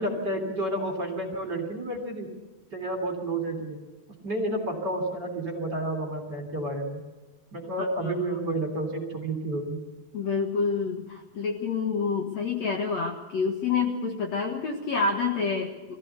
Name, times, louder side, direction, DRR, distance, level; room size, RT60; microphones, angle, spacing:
voice 1, 0.0-2.3 2.7-3.8 4.2-7.0 7.5-9.8, right 1 dB, 30° right, 3 dB, 3.4 m, -30 dB
voice 2, 8.0-8.4 10.1-16.0, left 5 dB, 55° left, 1 dB, 2.3 m, -28 dB
23.0 x 15.5 x 8.3 m, 1.2 s
omnidirectional pair, 4.5 m